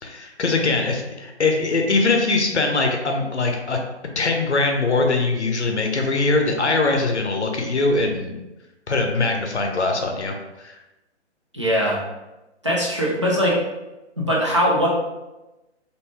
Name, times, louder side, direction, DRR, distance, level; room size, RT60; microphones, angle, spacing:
voice 1, 0.0-3.8 4.2-8.4 8.9-10.8, left 3 dB, 75° left, 3 dB, 0.6 m, -22 dB
voice 2, 11.5-12.0 12.6-13.6 14.2-14.9, equal, 30° right, -5 dB, 0.4 m, -20 dB
2.5 x 2.3 x 3.2 m, 1.0 s
figure-of-eight pair, 135°, 34 cm